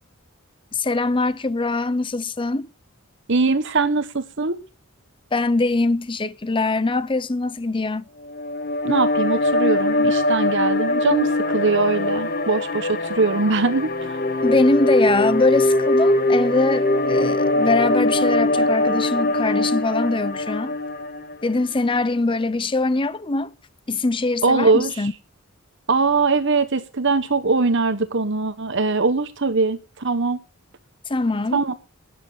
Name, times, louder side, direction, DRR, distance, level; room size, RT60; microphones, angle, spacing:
voice 1, 0.7-2.7 5.3-8.0 14.4-20.7 21.4-23.5 23.9-25.1 31.1-31.6, left 3 dB, 25° left, 0.6 m, -22 dB
voice 2, 3.3-4.6 8.8-14.2 24.4-24.9 25.9-30.4 31.5-31.7, right 3 dB, 55° right, 1.2 m, -21 dB
sound 1, 8.3-21.6, left 2 dB, 45° left, 1.2 m, -21 dB
12.5 x 9.6 x 5.6 m
head